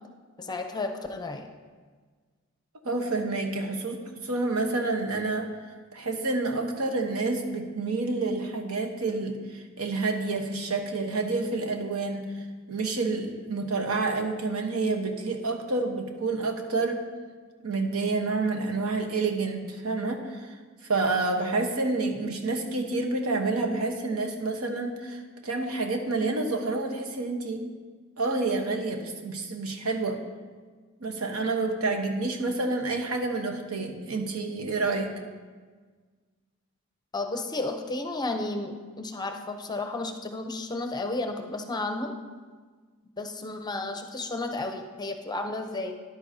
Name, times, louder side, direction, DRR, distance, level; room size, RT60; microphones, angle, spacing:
voice 1, 0.4-1.5 37.1-42.1 43.2-46.0, left 2 dB, 20° left, 4 dB, 0.7 m, -32 dB
voice 2, 2.8-5.5 5.9-12.3 12.7-17.0 17.6-20.5 20.9-27.6 28.2-30.2 31.0-35.1, right 3 dB, 90° right, 4 dB, 1.1 m, -28 dB
13.5 x 10.5 x 2.8 m, 1.5 s
head